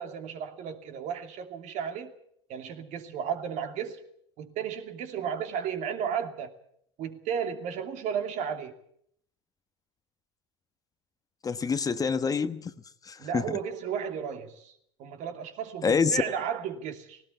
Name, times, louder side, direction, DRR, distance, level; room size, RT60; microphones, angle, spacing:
voice 1, 0.0-2.1 2.5-4.0 4.4-6.5 7.0-8.7 13.2-14.7 15.0-17.2, right 8 dB, 55° right, 2.7 m, -34 dB
voice 2, 11.4-12.7 13.0-13.6 15.8-16.2, left 5 dB, 25° left, 1.1 m, -26 dB
18.0 x 18.0 x 8.4 m
hypercardioid pair, 85°, 15 cm